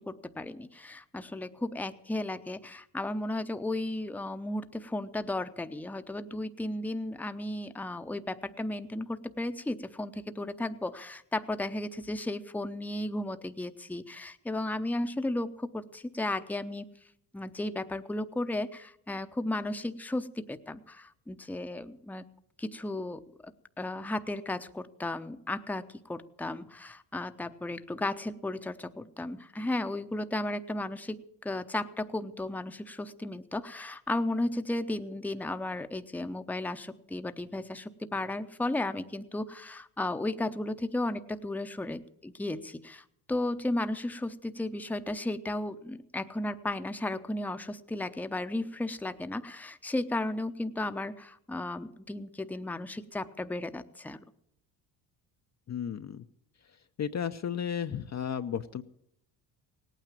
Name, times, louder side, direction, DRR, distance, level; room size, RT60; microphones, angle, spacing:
voice 1, 0.0-16.8 17.3-22.2 22.6-23.5 23.8-54.2, left 2 dB, 5° left, 9 dB, 0.7 m, -34 dB
voice 2, 55.7-56.2 57.0-58.8, left 8 dB, 35° left, 8 dB, 0.6 m, -33 dB
18.0 x 9.1 x 7.4 m, 0.74 s
supercardioid pair, 70°, 48 cm